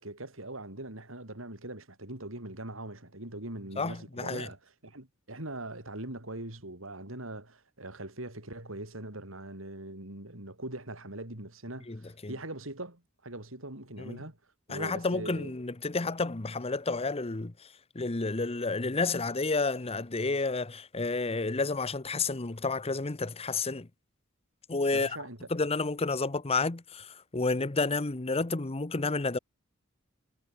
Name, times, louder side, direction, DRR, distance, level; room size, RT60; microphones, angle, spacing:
voice 1, 0.0-14.4 14.7-15.5 24.9-25.4, right 1 dB, 75° right, 5.7 m, -41 dB
voice 2, 3.8-4.5 11.9-12.3 14.0-14.2 14.7-23.9 24.7-25.2 25.5-29.4, left 3 dB, 30° left, 0.9 m, -31 dB
head